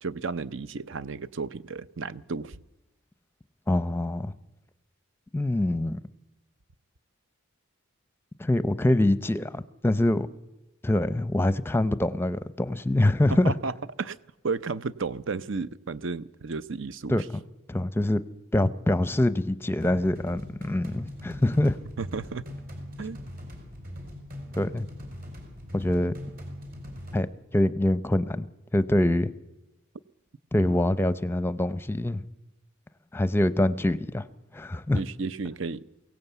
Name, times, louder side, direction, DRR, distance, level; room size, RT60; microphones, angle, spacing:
voice 1, 0.0-2.6 13.4-13.7 14.0-14.2 14.4-17.1 22.0-22.4 23.0-23.2 34.9-35.8, right 4 dB, 60° right, 0.7 m, -33 dB
voice 2, 3.7-4.3 5.3-6.0 8.4-10.3 10.8-13.5 17.1-17.2 17.7-18.2 18.5-21.8 24.6-24.9 25.7-26.1 27.1-27.3 27.5-29.3 30.5-32.2 33.1-34.3 34.5-35.0, left 1 dB, 10° left, 0.6 m, -24 dB
sound 1, 19.8-27.2, left 1 dB, 45° right, 4.7 m, -41 dB
22.5 x 17.0 x 8.1 m
head